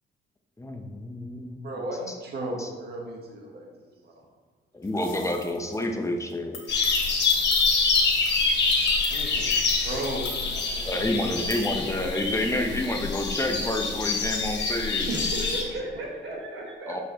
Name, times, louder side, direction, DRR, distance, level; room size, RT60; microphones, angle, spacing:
voice 1, 0.6-1.6 2.6-2.7 4.7-6.6 10.8-15.1 16.9-17.0, left 1 dB, 15° left, 3 dB, 0.8 m, -29 dB
voice 2, 1.6-4.2 6.6-6.8 9.1-11.8 15.7-15.8, right 1 dB, 55° right, -1 dB, 1.3 m, -37 dB
sound 1, 4.9-5.8 6.3-10.7 11.5-11.7, left 6 dB, 80° left, 1.1 m, -40 dB
sound 2, 6.7-15.6, left 4 dB, 60° left, 1.2 m, -26 dB
voice 3, 15.0-17.0, right 2 dB, 70° right, -2 dB, 1.7 m, -34 dB
6.2 x 5.7 x 3.0 m, 1.5 s
cardioid pair, 90°, 20 cm